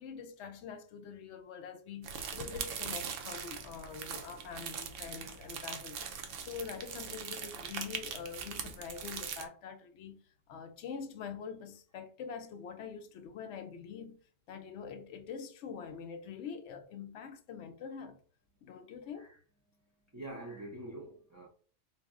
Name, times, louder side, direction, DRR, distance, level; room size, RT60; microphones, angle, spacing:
voice 1, 0.0-6.0 6.4-14.2 14.5-18.2 18.6-19.3, left 6 dB, 70° left, 0.8 m, -45 dB
sound 1, 2.0-9.5, right 6 dB, 90° right, 1.0 m, -41 dB
voice 2, 20.1-21.5, right 1 dB, 25° right, 0.4 m, -45 dB
4.1 x 2.0 x 3.5 m
omnidirectional pair, 1.2 m